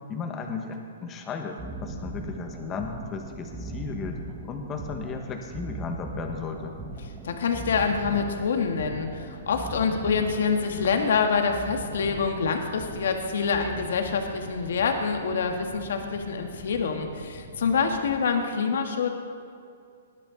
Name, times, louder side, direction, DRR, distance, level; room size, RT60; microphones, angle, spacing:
voice 1, 0.1-4.2 4.4-6.8, left 5 dB, 20° left, 3 dB, 1.6 m, -35 dB
sound 1, 1.6-18.2, right 2 dB, 10° right, 1.6 m, -40 dB
voice 2, 7.2-19.1, left 5 dB, 70° left, 4 dB, 1.8 m, -26 dB
19.5 x 12.0 x 4.0 m, 2.4 s
hypercardioid pair, 145°, 0 cm